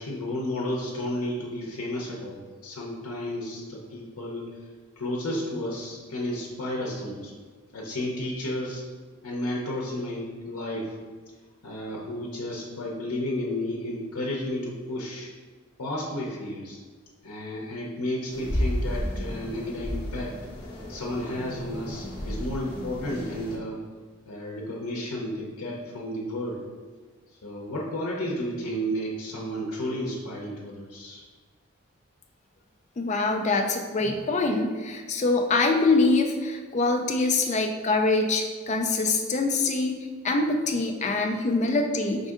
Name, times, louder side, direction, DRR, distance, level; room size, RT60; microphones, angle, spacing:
voice 1, 0.0-4.6 5.0-7.3 7.7-8.8 9.2-11.0 11.6-15.3 15.8-16.8 17.2-20.3 20.9-23.8 24.3-26.6 27.4-31.2, left 1 dB, 85° left, -2 dB, 0.7 m, -32 dB
sound 1, 18.3-23.6, equal, 15° right, 1.1 m, -32 dB
voice 2, 33.0-42.3, left 3 dB, 30° left, 4 dB, 0.4 m, -24 dB
5.2 x 2.6 x 3.6 m, 1.5 s
head